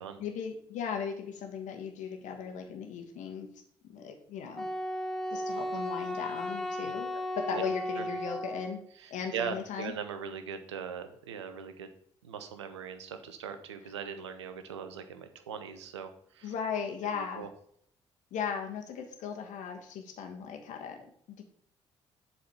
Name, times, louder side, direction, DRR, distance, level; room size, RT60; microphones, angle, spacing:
voice 1, 0.2-3.5 3.9-4.7 5.3-8.8 9.1-9.9 16.4-17.5 18.3-21.4, left 7 dB, 60° left, 4 dB, 1.4 m, -37 dB
Wind instrument woodwind instrument, 4.6-8.8, equal, 5° left, 0.9 m, -35 dB
voice 2, 9.0-11.9 12.2-16.5 17.1-17.5, right 7 dB, 80° right, 9 dB, 0.7 m, -40 dB
7.6 x 4.1 x 6.7 m, 0.66 s
figure-of-eight pair, 45°, 15 cm